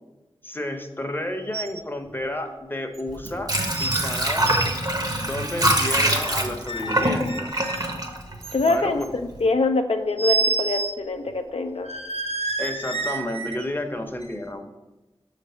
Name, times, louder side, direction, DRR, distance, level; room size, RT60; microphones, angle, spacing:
voice 1, 0.4-3.5 3.8-4.5 5.2-7.5 8.6-9.1 12.6-14.7, left 1 dB, 20° left, 5 dB, 0.7 m, -31 dB
sound 1, 1.5-1.8 2.1-2.2 2.9-3.0 3.7-4.0 4.3-4.7 5.8-6.3 6.7-7.9 8.4-9.1 10.2-10.9 11.3-11.4 11.8-13.6 14.2-14.3, right 3 dB, 90° right, 0.5 m, -29 dB
Water / Sink (filling or washing), 3.1-9.0 9.3-9.4, right 1 dB, 40° right, 0.8 m, -24 dB
voice 2, 8.5-9.0 9.4-11.9, left 3 dB, 75° left, 5 dB, 0.4 m, -24 dB
6.1 x 3.3 x 5.5 m, 1.1 s
wide cardioid pair, 50°, 10 cm